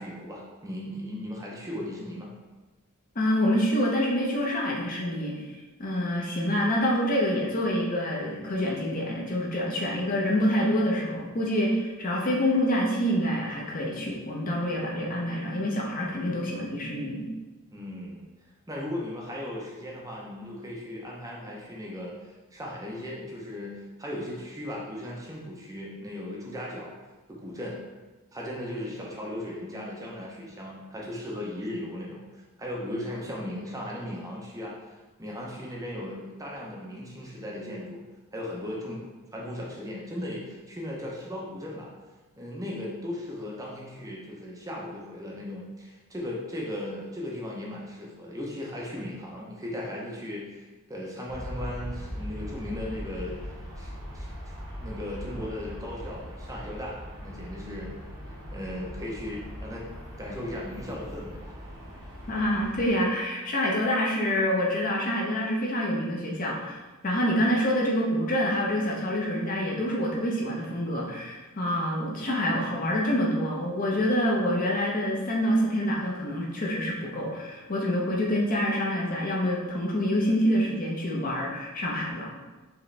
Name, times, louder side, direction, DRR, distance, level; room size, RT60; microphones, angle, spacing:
voice 1, 0.0-2.3 17.7-18.2 18.7-26.9 27.3-27.8 28.3-34.7 35.2-38.0 38.3-39.1 39.3-41.9 42.4-53.4 53.8-54.3 54.8-57.9 58.5-59.8 60.2-61.5, left 1 dB, 15° right, -3 dB, 0.6 m, -37 dB
voice 2, 3.1-5.3 5.8-17.2 62.3-66.8 67.0-82.3, equal, 40° left, -2 dB, 0.8 m, -26 dB
Aircraft, 51.3-62.9, equal, 75° right, 1.3 m, -40 dB
4.8 x 3.1 x 3.3 m, 1.2 s
head